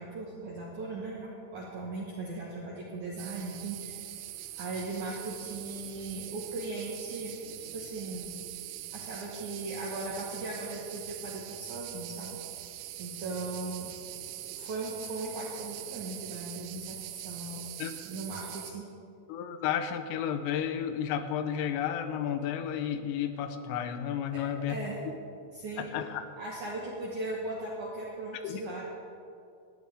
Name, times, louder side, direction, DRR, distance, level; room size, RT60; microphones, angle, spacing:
voice 1, 0.0-4.1 4.6-7.4 7.7-8.3 8.9-12.4 12.6-13.9 14.6-17.7 18.0-18.8 24.3-24.4 24.7-25.0 25.5-25.8 26.4-28.8, right 2 dB, 70° right, -4 dB, 1.9 m, -38 dB
sound 1, 3.2-18.7, right 13 dB, 85° right, 2.6 m, -43 dB
voice 2, 19.3-24.8 25.8-26.2 28.4-28.8, left 9 dB, 85° left, 9 dB, 3.4 m, -32 dB
19.0 x 13.5 x 3.6 m, 2.5 s
omnidirectional pair, 5.7 m